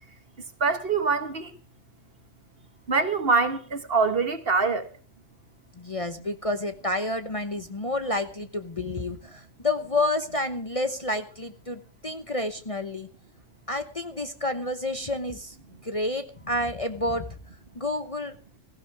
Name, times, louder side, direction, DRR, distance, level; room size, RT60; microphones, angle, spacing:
voice 1, 0.6-1.6 2.9-4.9, right 4 dB, 50° right, 1.5 m, -24 dB
voice 2, 5.8-13.1 13.7-15.5 15.8-17.3 17.7-18.3, left 2 dB, 30° left, 1.0 m, -29 dB
17.0 x 15.0 x 3.4 m
omnidirectional pair, 1.3 m